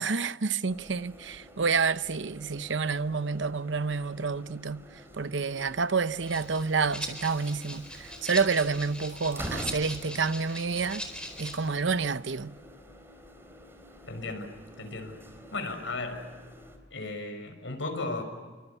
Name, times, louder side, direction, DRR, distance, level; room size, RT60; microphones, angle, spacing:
voice 1, 0.0-4.8 5.2-11.1 11.4-12.5, right 5 dB, 75° right, 0.8 m, -29 dB
sound 1, 0.7-16.8, equal, 15° right, 4.0 m, -47 dB
Rattle (instrument), 6.2-11.7, left 1 dB, 5° left, 4.5 m, -41 dB
voice 2, 14.1-15.2 15.5-16.3 16.9-18.2, left 2 dB, 90° left, 6.2 m, -35 dB
29.5 x 25.5 x 7.2 m
head